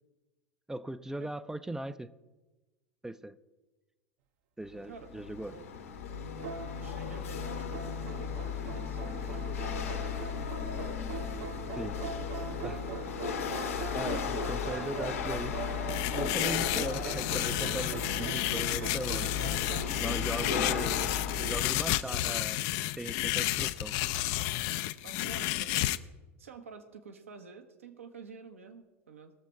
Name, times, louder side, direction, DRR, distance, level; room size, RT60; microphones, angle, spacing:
voice 1, 0.7-2.1 3.0-3.4 4.6-5.5 11.7-12.0 12.6-12.8 13.9-15.6 16.1-19.4 20.0-21.0 21.4-22.6 23.0-23.9, right 1 dB, 5° right, 13 dB, 0.5 m, -38 dB
Chatter / Hiss / Rattle, 4.7-21.6, left 7 dB, 75° left, 1.5 m, -35 dB
sound 1, 6.4-7.2 7.7-19.9, right 7 dB, 55° right, 0.8 m, -42 dB
voice 2, 6.4-11.1 12.0-13.1 20.3-20.8 21.6-22.5 24.6-25.9 26.4-29.3, right 5 dB, 75° right, 5 dB, 1.3 m, -49 dB
sound 2, 15.9-26.0, left 15 dB, 50° left, 0.5 m, -32 dB
19.5 x 7.0 x 4.6 m, 1.2 s
figure-of-eight pair, 80°, 7 cm